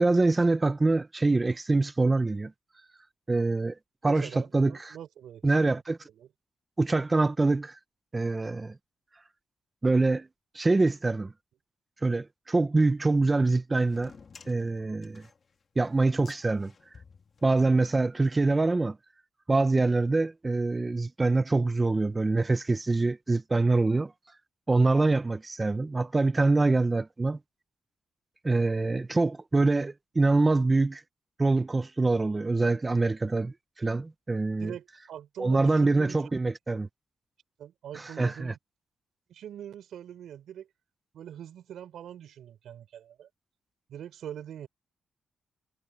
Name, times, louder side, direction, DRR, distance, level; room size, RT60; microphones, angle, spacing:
voice 1, 0.0-2.5 3.3-3.8 4.0-5.0 5.4-6.1 6.8-7.8 8.1-8.7 9.8-10.3 10.5-11.3 12.0-14.1 14.5-15.3 15.8-16.7 17.4-19.0 19.5-24.1 24.7-27.4 28.4-31.0 31.4-34.7 35.4-36.9 37.9-38.5, right 3 dB, 20° right, 0.7 m, -25 dB
voice 2, 4.1-5.5 6.1-6.3 34.6-36.2 37.6-38.6 39.3-40.7 41.1-43.3 43.9-44.7, right 10 dB, 85° right, 4.6 m, -43 dB
sound 1, 13.8-18.4, left 5 dB, 35° left, 2.2 m, -54 dB
wide cardioid pair, 145°, 0 cm